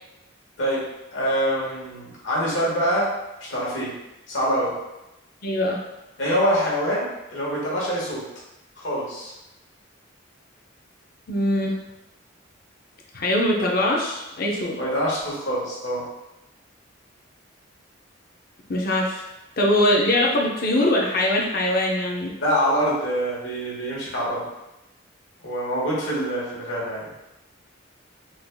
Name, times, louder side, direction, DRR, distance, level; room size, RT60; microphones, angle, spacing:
voice 1, 1.1-3.1 3.5-3.9 4.3-4.7 6.2-8.2 8.8-9.3 14.8-16.0 22.4-24.4 25.4-27.1, equal, 70° left, -6 dB, 1.3 m, -25 dB
voice 2, 5.4-5.8 11.3-11.8 13.1-14.8 18.7-19.2 19.6-22.3, left 1 dB, 50° left, -1 dB, 0.6 m, -22 dB
3.9 x 3.4 x 2.2 m, 0.95 s
head